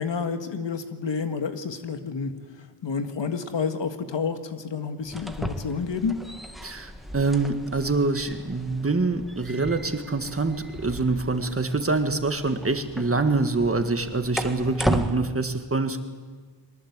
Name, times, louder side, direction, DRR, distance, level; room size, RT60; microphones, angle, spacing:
voice 1, 0.0-2.3 2.8-6.1, left 5 dB, 75° left, 8 dB, 1.8 m, -29 dB
sound 1, 5.0-15.1, equal, ahead, 1.7 m, -34 dB
voice 2, 6.6-16.0, right 3 dB, 30° right, 7 dB, 1.9 m, -25 dB
23.0 x 20.0 x 8.2 m, 1.4 s
wide cardioid pair, 90°, 43 cm